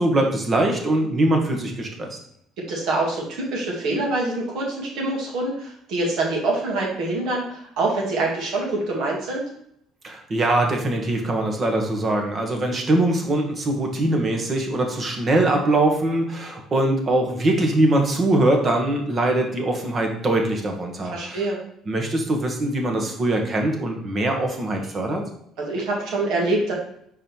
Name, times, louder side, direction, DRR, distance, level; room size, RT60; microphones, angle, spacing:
voice 1, 0.0-2.2 10.0-21.4 21.9-25.2, right 1 dB, 40° right, 3 dB, 1.5 m, -22 dB
voice 2, 2.6-3.2 3.5-9.4 21.1-21.6 25.6-26.7, right 2 dB, 70° right, -3 dB, 2.2 m, -25 dB
5.1 x 4.0 x 4.5 m, 0.71 s
supercardioid pair, 70°, 0 cm